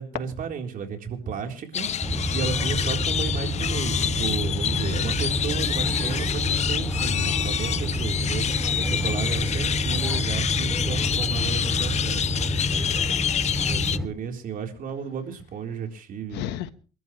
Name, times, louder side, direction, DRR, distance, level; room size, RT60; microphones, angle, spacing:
voice 1, 0.0-1.9 2.3-12.5 13.7-16.4, right 7 dB, 55° right, 3.8 m, -33 dB
sound 1, 1.7-14.0, left 9 dB, 40° left, 0.6 m, -27 dB
sound 2, 2.0-14.1, equal, ahead, 2.7 m, -28 dB
voice 2, 8.9-9.2 12.5-13.5 16.3-16.7, left 12 dB, 90° left, 1.3 m, -37 dB
28.5 x 12.5 x 3.2 m
cardioid pair, 110°, 17 cm